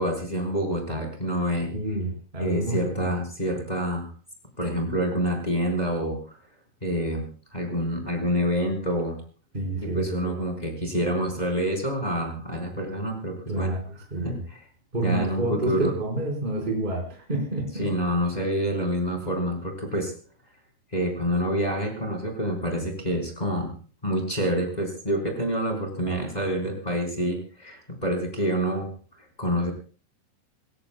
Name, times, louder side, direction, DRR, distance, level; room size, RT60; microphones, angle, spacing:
voice 1, 0.0-1.7 2.4-4.1 4.6-6.4 6.8-9.2 9.8-13.7 14.2-14.3 15.0-15.9 17.8-20.1 20.9-23.7 24.0-28.9 29.2-29.7, equal, 10° left, 2 dB, 3.8 m, -27 dB
voice 2, 1.7-3.1 9.5-10.4 13.5-13.8 14.1-14.4 14.9-17.9 26.0-26.2, right 2 dB, 10° right, 0 dB, 4.2 m, -29 dB
28.0 x 15.5 x 2.3 m, 0.39 s
omnidirectional pair, 5.4 m